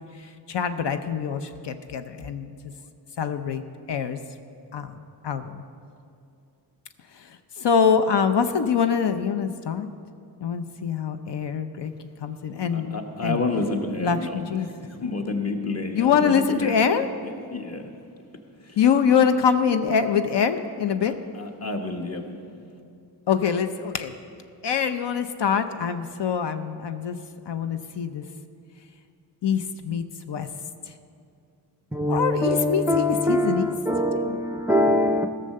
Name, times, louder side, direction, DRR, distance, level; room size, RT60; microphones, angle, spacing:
voice 1, 0.5-2.5 3.2-4.2 4.7-4.9 5.2-5.6 7.6-9.9 10.4-11.9 12.2-13.4 14.0-14.7 15.9-17.1 18.8-21.1 23.3-24.1 24.6-27.2 27.5-28.2 29.4-30.5 32.1-33.7 34.1-34.4, left 7 dB, 75° left, 0.6 m, -24 dB
voice 2, 12.5-16.8 17.2-17.9 18.7-18.8 21.1-22.3, left 3 dB, 35° left, 1.1 m, -30 dB
voice 3, 31.9-35.3, left 1 dB, 5° right, 0.4 m, -23 dB
15.5 x 6.7 x 6.5 m
wide cardioid pair, 135°, 42 cm